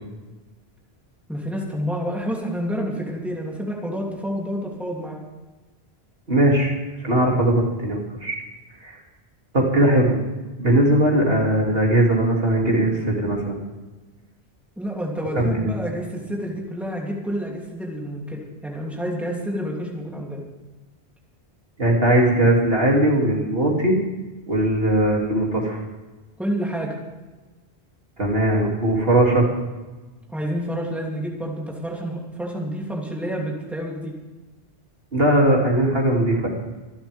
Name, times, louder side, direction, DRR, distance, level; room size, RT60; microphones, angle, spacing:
voice 1, 1.3-5.2 14.8-20.4 26.4-26.9 30.3-34.1, equal, ahead, -2 dB, 3.0 m, -29 dB
voice 2, 6.3-6.7 7.0-8.4 8.8-9.0 9.5-10.2 10.6-13.6 15.4-15.7 21.8-24.0 24.5-25.8 28.2-29.5 35.1-36.5, right 1 dB, 60° right, -2 dB, 3.1 m, -19 dB
26.0 x 12.0 x 3.6 m, 1.2 s
omnidirectional pair, 1.1 m